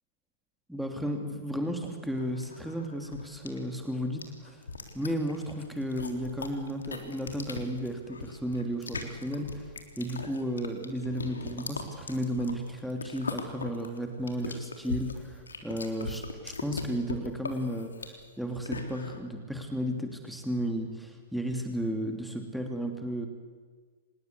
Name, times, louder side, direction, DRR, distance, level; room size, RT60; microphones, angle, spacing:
voice 1, 0.7-4.6 4.9-23.3, equal, ahead, 3 dB, 2.9 m, -34 dB
sound 1, 2.2-19.2, left 4 dB, 75° left, 3.6 m, -40 dB
26.0 x 21.0 x 8.5 m, 1.5 s
figure-of-eight pair, 110°, 0 cm